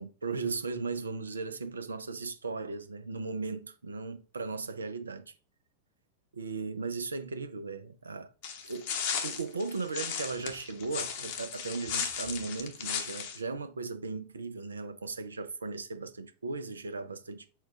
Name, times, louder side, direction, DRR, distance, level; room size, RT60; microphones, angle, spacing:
voice 1, 0.0-5.3 6.3-8.3 8.7-8.9 9.2-17.5, right 4 dB, 75° right, 0.5 m, -37 dB
sound 1, 8.4-13.4, left 7 dB, 50° left, 0.9 m, -35 dB
4.5 x 2.3 x 4.8 m
figure-of-eight pair, 90°, 0 cm